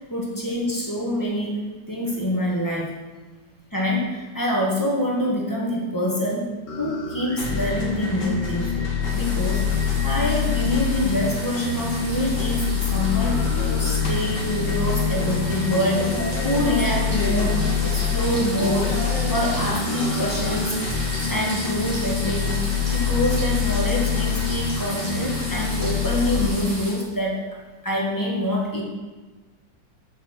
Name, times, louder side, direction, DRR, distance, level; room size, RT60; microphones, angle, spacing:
voice 1, 0.1-1.6 1.9-2.9 3.7-6.5 6.8-8.7 9.1-9.7 10.0-12.6 12.9-16.2 16.4-19.0 19.3-20.8 21.1-22.6 22.9-27.4 27.8-28.8, equal, 10° left, -4 dB, 1.5 m, -25 dB
sound 1, 6.7-26.5, left 6 dB, 45° left, 1.7 m, -25 dB
sound 2, 9.0-27.0, equal, 20° right, 1.9 m, -35 dB
7.1 x 5.9 x 6.1 m, 1.3 s
omnidirectional pair, 2.1 m